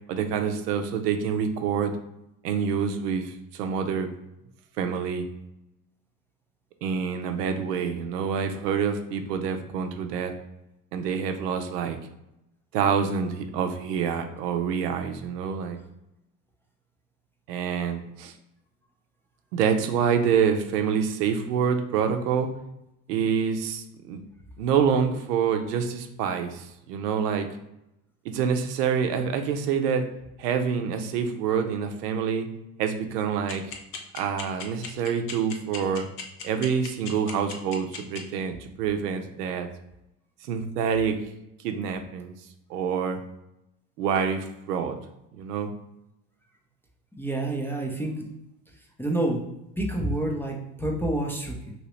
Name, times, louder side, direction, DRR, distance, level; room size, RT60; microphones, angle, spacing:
voice 1, 0.1-2.0 2.4-4.1 4.8-5.3 6.8-10.3 10.9-12.0 12.7-15.8 17.5-18.3 19.5-22.5 23.1-24.2 24.6-27.5 28.3-30.1 30.4-32.5 32.8-33.6 34.1-36.1 36.4-39.7 40.5-41.2 41.6-42.3 42.7-43.2 44.0-45.0 45.3-45.7, right 7 dB, 85° right, 6 dB, 0.6 m, -26 dB
sound 1, 33.5-38.2, left 7 dB, 75° left, 0.7 m, -36 dB
voice 2, 47.2-48.3 49.0-49.4 49.8-51.7, right 1 dB, 5° left, -1 dB, 0.4 m, -28 dB
3.0 x 2.9 x 3.0 m, 0.87 s
hypercardioid pair, 85°, 46 cm